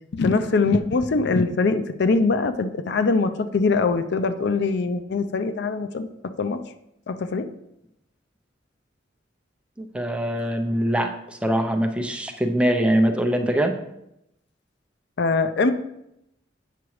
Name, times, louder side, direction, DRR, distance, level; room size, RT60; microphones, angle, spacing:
voice 1, 0.1-6.6 7.1-7.5 15.2-15.7, left 3 dB, 65° left, 10 dB, 0.5 m, -22 dB
voice 2, 9.8-13.7, right 1 dB, 5° right, 3 dB, 0.6 m, -23 dB
8.4 x 5.9 x 3.1 m, 0.81 s
head